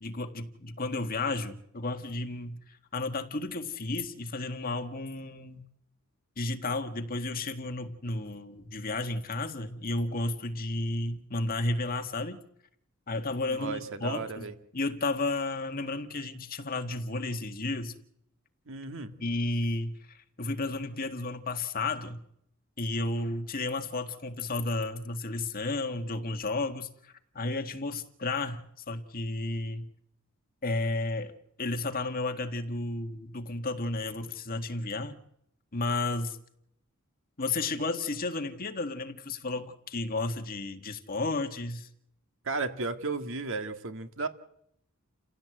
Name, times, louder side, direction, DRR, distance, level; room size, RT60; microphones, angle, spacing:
voice 1, 0.0-2.6 2.9-5.6 6.4-12.4 13.1-14.5 14.7-17.9 19.2-22.2 22.8-26.9 27.4-29.9 30.6-35.2 35.7-36.4 37.4-41.9, left 2 dB, 45° left, 1.8 m, -32 dB
voice 2, 13.5-14.5 18.7-19.2 42.4-44.3, right 3 dB, 65° right, 1.9 m, -34 dB
29.0 x 16.0 x 7.9 m
head